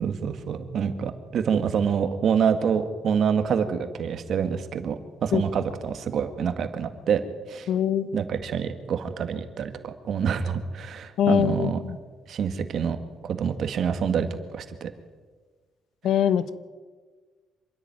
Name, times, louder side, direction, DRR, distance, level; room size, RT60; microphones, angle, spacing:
voice 1, 0.0-7.2 7.5-7.7 8.1-11.8 12.3-13.0 13.2-14.3 14.5-14.9, right 7 dB, 65° right, 8 dB, 2.0 m, -26 dB
voice 2, 7.7-8.1 11.2-12.0 16.0-16.5, left 9 dB, 80° left, 15 dB, 1.0 m, -23 dB
26.5 x 10.5 x 9.3 m, 1.4 s
cardioid pair, 90°, 0 cm